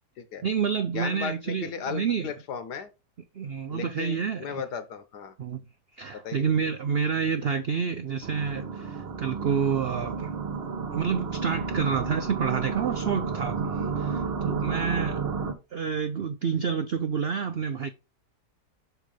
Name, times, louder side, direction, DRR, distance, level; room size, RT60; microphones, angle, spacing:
voice 1, 0.4-2.3 3.3-4.6 5.4-5.6 6.0-10.3 10.9-15.2 15.7-17.9, right 6 dB, 80° right, 0.5 m, -28 dB
voice 2, 0.9-2.9 3.7-5.3 6.1-6.7, left 7 dB, 75° left, 1.7 m, -36 dB
sound 1, 8.2-15.5, right 5 dB, 40° right, 1.2 m, -31 dB
6.4 x 4.7 x 5.0 m
omnidirectional pair, 1.8 m